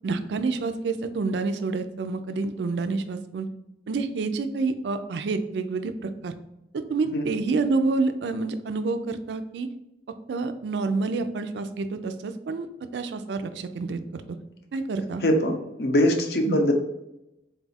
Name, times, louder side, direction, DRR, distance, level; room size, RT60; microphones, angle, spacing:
voice 1, 0.0-3.5 3.9-6.4 6.7-9.7 10.3-12.7 12.9-14.2 14.7-15.2 16.5-16.6, right 3 dB, 80° right, 10 dB, 0.4 m, -28 dB
voice 2, 15.2-16.7, equal, 65° left, 4 dB, 0.6 m, -22 dB
3.9 x 2.4 x 4.0 m, 0.89 s
head